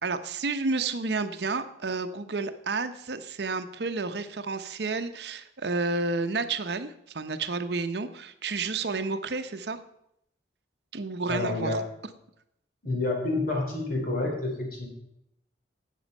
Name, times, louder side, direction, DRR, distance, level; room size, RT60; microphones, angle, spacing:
voice 1, 0.0-9.8 10.9-11.8, right 3 dB, 65° right, 9 dB, 0.8 m, -31 dB
voice 2, 11.3-11.8 12.8-14.9, left 2 dB, 50° left, 0 dB, 3.3 m, -28 dB
12.5 x 8.3 x 5.4 m, 0.79 s
head